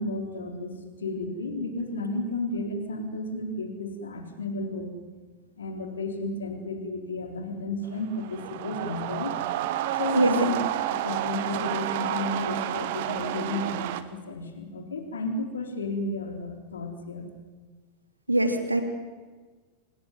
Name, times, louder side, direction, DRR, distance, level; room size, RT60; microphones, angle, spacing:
voice 1, 0.0-4.9 5.6-9.4 10.0-10.6 10.9-17.3, left 2 dB, 70° left, 5 dB, 3.8 m, -32 dB
sound 1, 7.9-14.0, right 13 dB, 50° right, 1.6 m, -30 dB
voice 2, 18.3-18.8, right 1 dB, 85° right, 6 dB, 3.1 m, -22 dB
27.0 x 19.5 x 9.5 m, 1.4 s
figure-of-eight pair, 90°, 0 cm